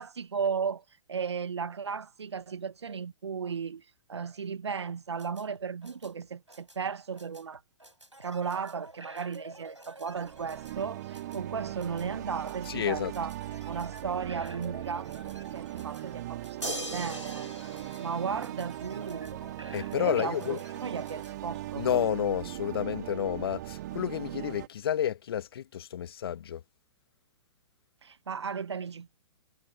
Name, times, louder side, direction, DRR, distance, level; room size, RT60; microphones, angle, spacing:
voice 1, 0.0-7.6 8.2-13.3 13.6-15.1 15.5-17.5 18.0-19.4 20.0-21.8 28.0-29.2, right 6 dB, 65° right, 1.4 m, -35 dB
sound 1, 5.2-21.3, right 2 dB, 90° right, 5.1 m, -50 dB
sound 2, 10.1-24.7, right 15 dB, 40° right, 0.5 m, -39 dB
voice 2, 12.7-13.1 19.7-20.6 21.8-26.6, left 9 dB, 55° left, 1.5 m, -30 dB
sound 3, 16.6-19.1 20.8-20.9, equal, 85° left, 4.1 m, -39 dB
figure-of-eight pair, 115°, 15 cm